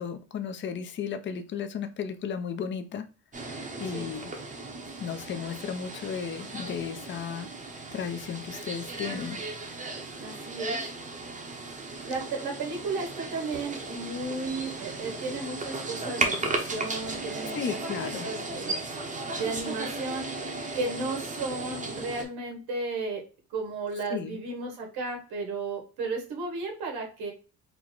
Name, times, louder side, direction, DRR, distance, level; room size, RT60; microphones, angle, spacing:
voice 1, 0.0-3.0 3.8-4.3 5.0-7.5 7.9-9.4 12.0-12.1 17.5-18.3 24.1-24.4, left 7 dB, 30° left, 8 dB, 0.5 m, -34 dB
sound 1, 3.3-22.2, right 3 dB, 20° right, 0.7 m, -36 dB
voice 2, 10.2-10.8 12.0-18.8 19.3-20.3 20.7-23.2 23.5-27.3, right 3 dB, 90° right, 1 dB, 1.7 m, -34 dB
4.6 x 2.1 x 3.8 m, 0.34 s
cardioid pair, 150°, 37 cm